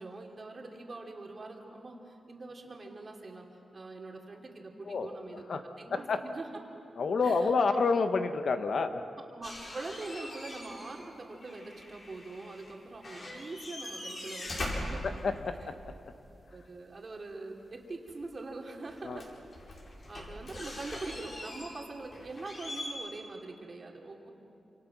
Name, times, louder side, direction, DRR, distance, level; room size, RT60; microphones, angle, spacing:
voice 1, 0.0-3.4 3.7-6.5 7.2-7.8 9.2-15.0 16.5-19.4 20.1-24.3, right 3 dB, 35° right, 1 dB, 2.9 m, -43 dB
voice 2, 5.9-6.2 7.0-9.0 15.0-15.8 19.0-19.2, left 4 dB, 60° left, 8 dB, 1.1 m, -29 dB
sound 1, 9.4-11.1 11.3-12.7 13.0-15.8 18.1-18.2 18.8-22.9, left 1 dB, 45° left, 4.7 m, -42 dB
27.5 x 26.5 x 6.1 m, 2.7 s
wide cardioid pair, 135°, 0 cm